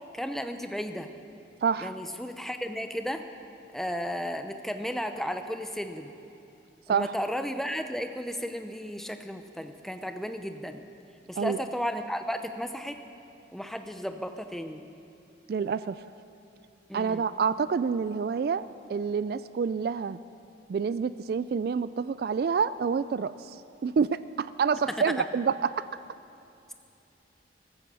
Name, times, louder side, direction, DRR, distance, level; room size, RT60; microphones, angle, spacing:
voice 1, 0.1-1.1 1.8-3.2 3.7-6.1 6.9-10.8 11.3-13.0 13.5-14.8 16.9-17.2 25.2-25.3, equal, ahead, 7 dB, 0.6 m, -34 dB
voice 2, 1.6-1.9 6.9-7.1 11.4-11.6 15.5-16.0 16.9-18.6 18.9-20.2 20.7-25.8, right 6 dB, 60° right, 15 dB, 0.3 m, -28 dB
14.5 x 13.5 x 6.9 m, 2.7 s
head